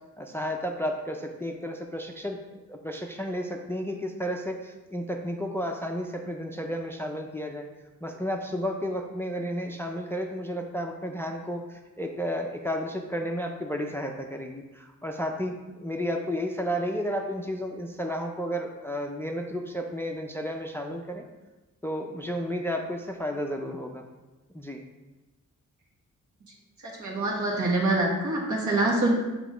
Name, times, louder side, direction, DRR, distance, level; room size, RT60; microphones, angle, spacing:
voice 1, 0.2-2.4 2.7-7.7 8.0-21.2 21.8-24.1 24.5-24.8, equal, 10° left, 3 dB, 0.4 m, -32 dB
voice 2, 26.8-29.1, right 2 dB, 70° right, -2 dB, 1.5 m, -25 dB
7.5 x 3.0 x 4.9 m, 1.1 s
wide cardioid pair, 155°, 30 cm